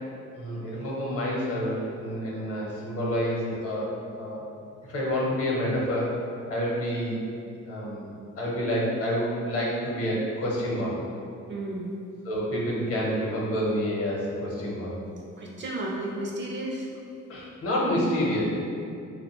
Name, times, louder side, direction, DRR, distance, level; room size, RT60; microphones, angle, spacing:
voice 1, 0.3-4.4 4.9-6.2 6.5-7.2 7.7-10.9 12.2-14.9 17.3-18.4, equal, 50° left, -5 dB, 0.7 m, -28 dB
voice 2, 11.5-11.9 15.4-16.9, right 1 dB, 40° right, -2 dB, 0.4 m, -33 dB
2.5 x 2.1 x 2.9 m, 2.5 s
cardioid pair, 90°, 30 cm